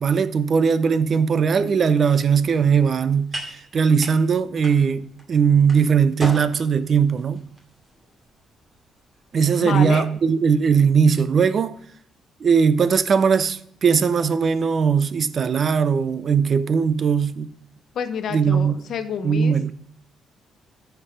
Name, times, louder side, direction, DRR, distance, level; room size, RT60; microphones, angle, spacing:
voice 1, 0.0-7.4 9.3-11.8 12.4-17.5 18.3-18.9 19.2-19.7, right 6 dB, 50° right, 0.6 m, -19 dB
sound 1, 2.2-10.2, right 1 dB, 25° right, 2.3 m, -40 dB
voice 2, 9.6-10.1 17.9-19.7, left 7 dB, 65° left, 0.7 m, -29 dB
13.5 x 4.7 x 5.0 m
cardioid pair, 90°, 0 cm